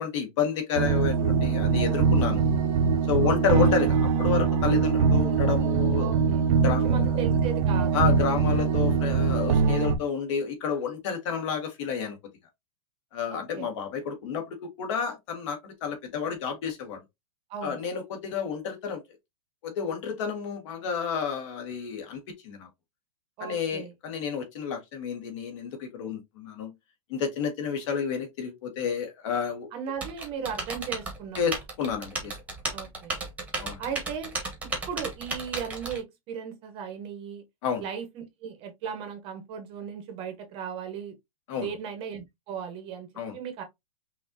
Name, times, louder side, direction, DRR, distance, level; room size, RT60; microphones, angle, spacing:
voice 1, 0.0-2.5 3.1-6.2 6.6-7.2 7.9-12.2 13.1-17.0 17.6-19.0 19.6-22.7 23.4-26.7 27.1-29.7 31.4-32.4 33.6-33.8 37.6-37.8 41.5-41.7 43.2-43.4, left 6 dB, 55° left, 1.8 m, -30 dB
sound 1, 0.7-10.0, right 5 dB, 65° right, 0.8 m, -23 dB
voice 2, 3.2-3.7 6.0-7.9 13.3-13.7 17.5-17.8 23.4-23.9 29.7-31.4 32.7-33.2 33.8-34.3 34.9-37.4 37.8-41.1 41.6-43.1 43.3-43.6, right 7 dB, 30° right, 1.0 m, -36 dB
Typing, 30.0-36.0, right 3 dB, 5° right, 1.2 m, -34 dB
5.7 x 2.7 x 2.7 m
supercardioid pair, 160°, 19 cm